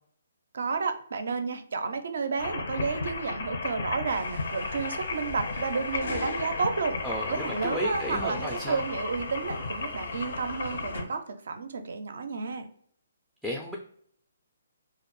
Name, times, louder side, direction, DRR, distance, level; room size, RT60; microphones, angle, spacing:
voice 1, 0.5-7.0 7.3-12.7, right 4 dB, 70° right, 8 dB, 0.4 m, -31 dB
sound 1, 2.4-11.0, left 3 dB, 60° left, 0.5 m, -34 dB
sound 2, 4.1-11.0, left 1 dB, 80° left, 0.8 m, -45 dB
voice 2, 7.0-8.8 13.4-13.8, equal, ahead, -2 dB, 0.3 m, -33 dB
2.4 x 2.0 x 2.9 m, 0.62 s
hypercardioid pair, 150°, 0 cm